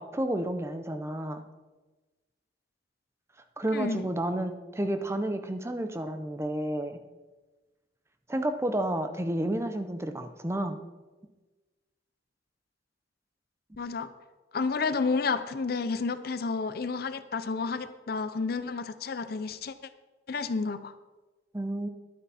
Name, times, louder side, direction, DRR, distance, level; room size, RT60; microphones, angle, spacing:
voice 1, 0.0-1.5 3.6-7.0 8.3-10.8 21.5-21.9, right 1 dB, 15° right, 8 dB, 0.6 m, -31 dB
voice 2, 3.7-4.1 13.8-14.1 14.5-19.7 20.3-20.9, left 4 dB, 55° left, 12 dB, 0.5 m, -30 dB
11.5 x 9.0 x 4.2 m, 1.2 s
head